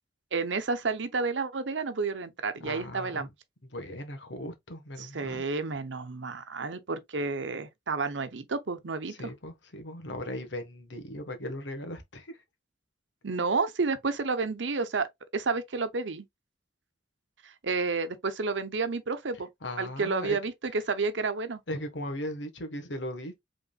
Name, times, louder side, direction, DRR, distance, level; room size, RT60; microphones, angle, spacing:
voice 1, 0.3-3.3 5.0-9.1 13.2-16.2 17.4-19.5 19.8-21.6, right 4 dB, 90° right, 0.8 m, -30 dB
voice 2, 2.6-3.3 3.6-5.4 9.1-12.4 19.6-20.4 21.7-23.4, left 1 dB, 80° left, 1.4 m, -38 dB
5.3 x 3.7 x 2.3 m
head